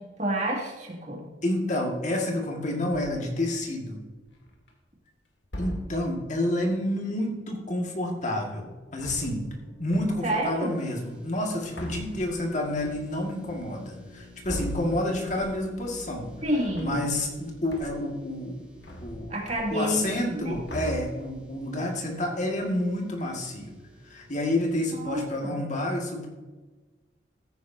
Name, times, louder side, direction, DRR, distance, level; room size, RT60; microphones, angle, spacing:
voice 1, 0.0-1.3 10.2-10.8 16.4-17.1 19.3-20.6 24.9-25.7, right 1 dB, 40° right, 0 dB, 2.2 m, -29 dB
voice 2, 1.4-4.0 5.6-9.4 9.8-16.3 16.8-18.6 19.0-19.3 19.7-23.8 24.0-26.3, left 1 dB, 40° left, 1 dB, 1.9 m, -29 dB
sound 1, 2.9-3.4 4.2-4.7 5.4-6.2 8.8-9.6 9.9-10.4 11.3-15.8 16.2-17.4 17.7-18.2 18.5-20.1 20.3-21.5, equal, 75° left, 2.1 m, -40 dB
sound 2, 9.2-25.0, left 2 dB, 5° right, 2.6 m, -52 dB
14.5 x 9.5 x 2.7 m, 1.2 s
head